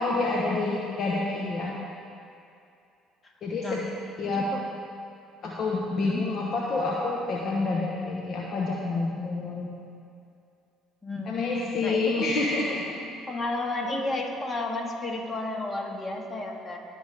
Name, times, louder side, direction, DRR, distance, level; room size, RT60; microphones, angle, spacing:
voice 1, 0.0-1.7 3.4-3.8 4.2-4.5 5.4-9.7 11.3-12.9, left 3 dB, 50° left, -3 dB, 1.2 m, -28 dB
voice 2, 4.2-4.6 5.9-6.2 11.0-11.4 11.8-12.4 13.3-16.8, left 2 dB, 30° left, 1 dB, 1.9 m, -32 dB
19.5 x 6.9 x 3.5 m, 2.5 s
hypercardioid pair, 60°, 0 cm